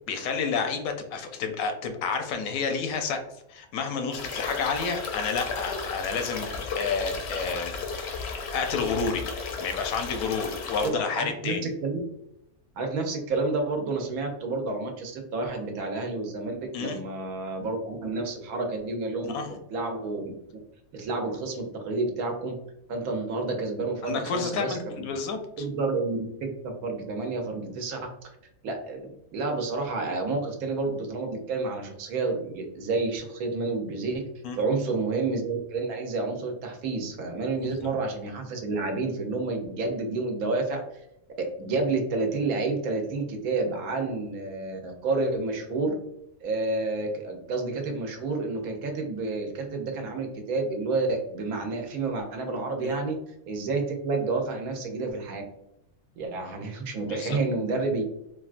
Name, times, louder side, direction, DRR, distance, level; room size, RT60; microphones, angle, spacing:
voice 1, 0.1-3.2 3.5-7.7 8.5-9.2 9.6-11.7 16.7-17.0 19.3-19.5 24.0-25.4 34.4-34.6 37.6-37.9 52.8-53.0 57.0-57.4, left 5 dB, 85° left, 5 dB, 1.0 m, -30 dB
sound 1, 4.1-10.9, left 4 dB, 65° left, 0.7 m, -34 dB
voice 2, 10.8-11.6 11.8-12.0 12.7-19.4 19.7-20.6 20.9-22.6 22.9-25.1 25.6-28.1 28.6-34.2 34.6-40.8 41.4-46.0 46.4-53.2 53.5-55.4 56.2-58.0, right 3 dB, 85° right, 3 dB, 1.1 m, -30 dB
3.5 x 2.3 x 2.4 m, 0.81 s
omnidirectional pair, 1.5 m